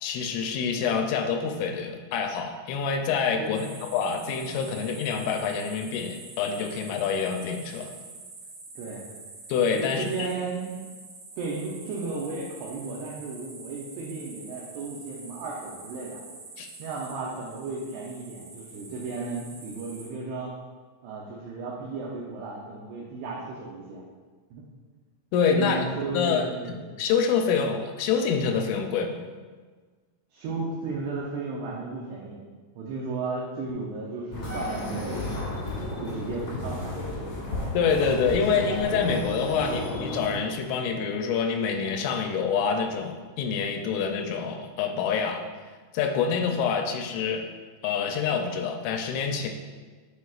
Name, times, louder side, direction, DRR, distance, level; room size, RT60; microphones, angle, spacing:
voice 1, 0.0-3.7 3.9-7.9 9.5-10.3 16.6-16.7 25.3-25.8 26.1-26.4 27.0-29.2 37.7-45.4 45.9-47.5 47.8-49.5, left 6 dB, 85° left, 4 dB, 2.9 m, -26 dB
voice 2, 3.4-3.8 8.8-9.1 9.7-10.9 11.4-16.2 16.8-20.5 21.0-24.0 24.5-24.6 25.5-26.9 30.3-32.4 32.8-35.6 36.0-37.2, right 3 dB, 85° right, -3 dB, 2.3 m, -34 dB
sound 1, 3.5-20.1, right 3 dB, 65° right, 2.6 m, -46 dB
sound 2, 34.3-40.4, left 1 dB, 65° left, 1.7 m, -33 dB
9.8 x 4.2 x 2.4 m, 1.4 s
omnidirectional pair, 5.6 m